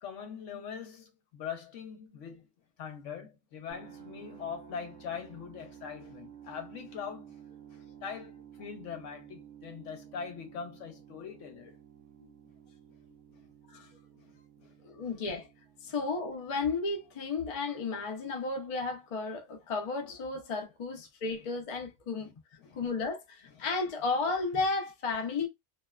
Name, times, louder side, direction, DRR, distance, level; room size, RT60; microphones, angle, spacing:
voice 1, 0.0-2.5 2.8-7.4 7.7-11.8 13.4-13.5 13.7-13.9 14.1-14.3 14.6-14.7 15.0-15.1 15.9-16.0 22.2-22.3 22.6-22.8, left 7 dB, 80° left, 1.0 m, -42 dB
sound 1, 3.7-19.6, right 9 dB, 90° right, 1.1 m, -54 dB
voice 2, 14.8-15.5 15.8-22.3 22.8-25.5, left 4 dB, 40° left, 0.5 m, -33 dB
2.8 x 2.1 x 2.3 m
omnidirectional pair, 1.3 m